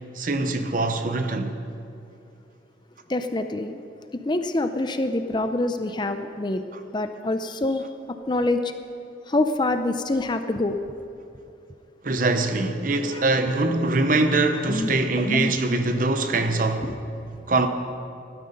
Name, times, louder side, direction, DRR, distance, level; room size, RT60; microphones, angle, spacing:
voice 1, 0.2-1.5 12.0-16.9 17.5-17.7, right 2 dB, 45° right, 0.9 m, -23 dB
voice 2, 3.1-3.8 4.1-6.6 6.9-7.9 8.3-8.7 9.3-10.8 13.1-13.2 14.7-15.6 16.8-17.0, left 2 dB, 25° left, 0.5 m, -26 dB
16.5 x 12.5 x 5.3 m
head